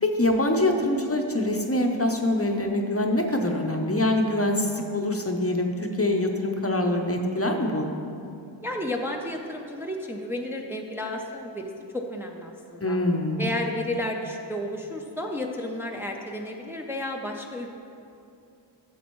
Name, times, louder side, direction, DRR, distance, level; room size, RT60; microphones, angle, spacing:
voice 1, 0.0-7.9 12.8-13.5, left 1 dB, 30° left, 3 dB, 0.7 m, -24 dB
voice 2, 8.6-13.0 13.4-17.8, left 1 dB, 5° right, 1 dB, 0.6 m, -32 dB
11.5 x 7.2 x 3.1 m, 2.7 s
wide cardioid pair, 50°, 46 cm